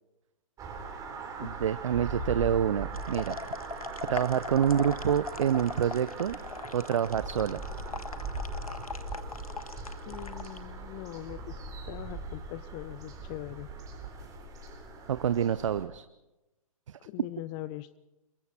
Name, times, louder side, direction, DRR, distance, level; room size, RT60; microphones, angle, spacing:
sound 1, 0.6-15.8, right 3 dB, 20° right, 4.0 m, -40 dB
voice 1, 1.4-3.4 4.1-6.4 6.7-7.6 15.1-16.0 16.9-17.0, right 9 dB, 60° right, 15 dB, 0.7 m, -27 dB
sound 2, 2.9-10.6, left 3 dB, 80° left, 1.6 m, -40 dB
voice 2, 10.1-11.5 11.9-13.7 17.1-18.0, left 16 dB, 30° left, 16 dB, 0.7 m, -41 dB
29.5 x 22.0 x 4.4 m, 0.99 s
figure-of-eight pair, 120°, 18 cm